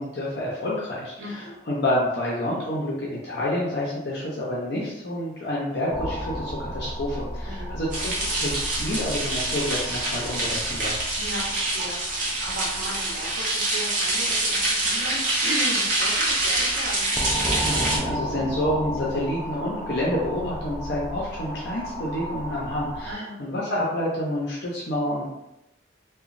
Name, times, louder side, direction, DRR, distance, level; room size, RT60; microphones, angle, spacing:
voice 1, 0.0-11.0 17.6-25.3, left 1 dB, 60° left, -5 dB, 0.6 m, -28 dB
voice 2, 1.2-1.6 7.5-7.8 11.2-17.1 23.0-23.4, right 1 dB, 80° right, -3 dB, 0.8 m, -35 dB
sound 1, 5.9-23.1, equal, 5° right, 0.3 m, -35 dB
sound 2, 7.9-18.0, right 2 dB, 45° right, 0.7 m, -26 dB
2.9 x 2.2 x 2.5 m, 0.88 s
head